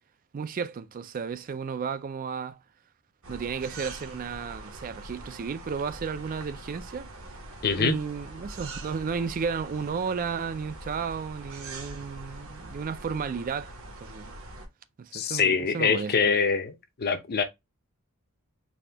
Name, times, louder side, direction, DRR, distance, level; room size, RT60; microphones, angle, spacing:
voice 1, 0.3-2.6 3.3-7.1 7.8-13.7 14.0-14.3 15.0-16.4, right 6 dB, 40° right, 0.3 m, -33 dB
sound 1, 3.2-14.7, right 2 dB, 65° right, 1.2 m, -43 dB
voice 2, 7.6-8.0 15.1-17.4, left 5 dB, 45° left, 0.6 m, -24 dB
4.2 x 2.7 x 3.3 m
head